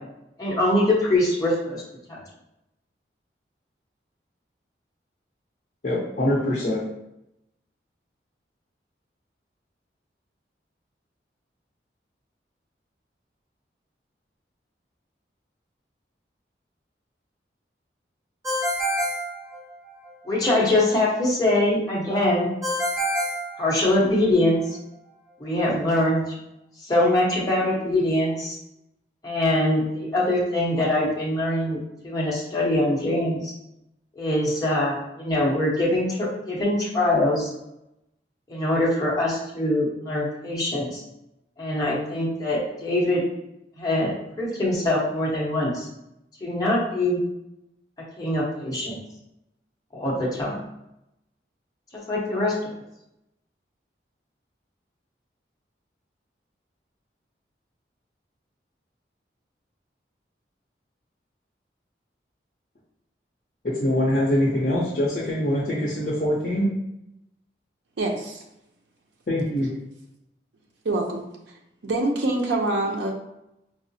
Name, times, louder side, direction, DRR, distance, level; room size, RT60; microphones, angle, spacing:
voice 1, 0.4-1.8 2.1-2.2 20.2-22.5 23.6-24.6 25.4-26.2 26.9-28.6 29.2-33.5 34.2-37.5 38.5-41.0 41.6-43.2 43.8-44.1 44.4-45.9 46.4-47.2 48.2-49.0 49.9-50.5 52.1-52.6, left 1 dB, 20° left, -5 dB, 0.8 m, -23 dB
voice 2, 5.8-6.8 63.8-66.7 69.3-69.7, left 1 dB, 50° left, -8 dB, 0.6 m, -23 dB
Ringtone, 18.4-20.1 22.6-24.3, equal, 15° right, 0.8 m, -27 dB
voice 3, 68.0-68.4 70.8-71.2 71.8-73.1, right 2 dB, 85° right, 1 dB, 0.5 m, -25 dB
4.6 x 2.0 x 2.6 m, 0.85 s
head